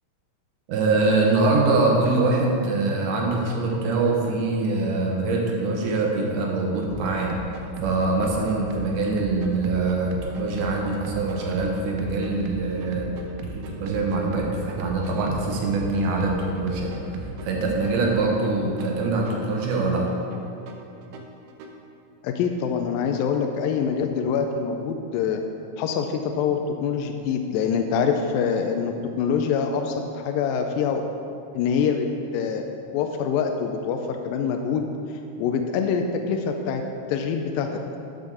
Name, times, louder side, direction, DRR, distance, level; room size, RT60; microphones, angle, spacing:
voice 1, 0.7-7.3 7.8-13.1 13.4-20.1, right 3 dB, 70° right, -1 dB, 2.5 m, -24 dB
sound 1, 6.8-21.8, right 3 dB, 90° right, 2.4 m, -37 dB
voice 2, 22.2-25.4 25.8-31.0 31.5-32.1 32.3-32.6 32.9-36.8 37.1-37.7, left 6 dB, 85° left, 4 dB, 2.3 m, -25 dB
9.6 x 5.3 x 6.3 m, 2.6 s
omnidirectional pair, 4.0 m